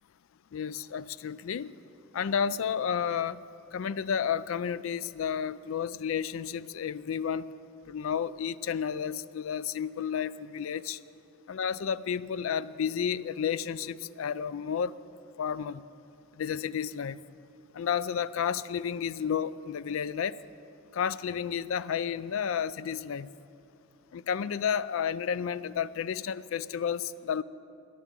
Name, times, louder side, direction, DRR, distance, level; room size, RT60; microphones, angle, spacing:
voice 1, 0.5-1.7 2.1-3.4 3.7-7.5 7.9-11.0 11.5-15.0 15.4-15.8 16.4-17.2 17.7-20.4 20.9-23.3 24.1-27.4, left 7 dB, 65° left, 15 dB, 0.4 m, -31 dB
14.5 x 10.5 x 7.4 m, 2.6 s
head